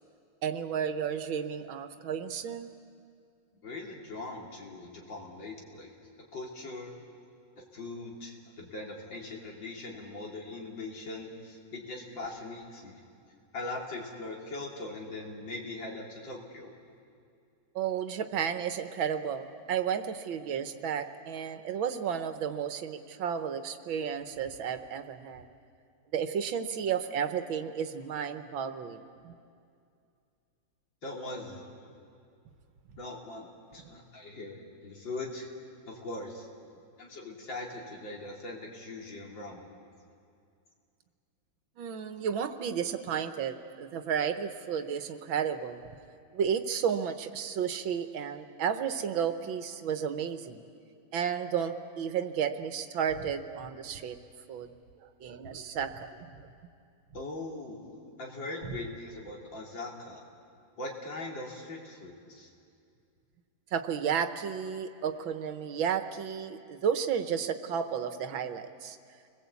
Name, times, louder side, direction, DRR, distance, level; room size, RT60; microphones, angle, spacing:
voice 1, 0.4-2.7 17.8-25.4 26.1-29.3 41.8-45.8 46.3-50.6 51.1-54.2 54.5-54.7 55.0-56.3 63.7-69.0, right 7 dB, 85° right, 9 dB, 1.9 m, -32 dB
voice 2, 3.6-5.9 6.3-7.0 7.7-13.0 13.5-16.7 31.0-31.6 33.0-35.5 35.9-36.5 37.0-39.7 57.1-60.2 60.8-62.5, left 2 dB, 70° left, -1 dB, 4.1 m, -41 dB
29.5 x 21.0 x 8.4 m, 2.4 s
omnidirectional pair, 2.1 m